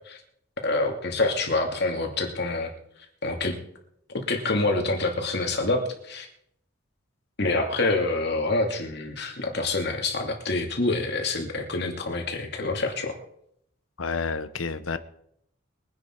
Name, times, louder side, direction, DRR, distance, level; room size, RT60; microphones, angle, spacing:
voice 1, 0.6-2.7 3.2-3.6 4.1-6.3 7.4-13.2, left 2 dB, 55° left, 2.5 m, -26 dB
voice 2, 14.0-15.0, left 4 dB, 85° left, 1.0 m, -29 dB
22.5 x 10.5 x 4.5 m
head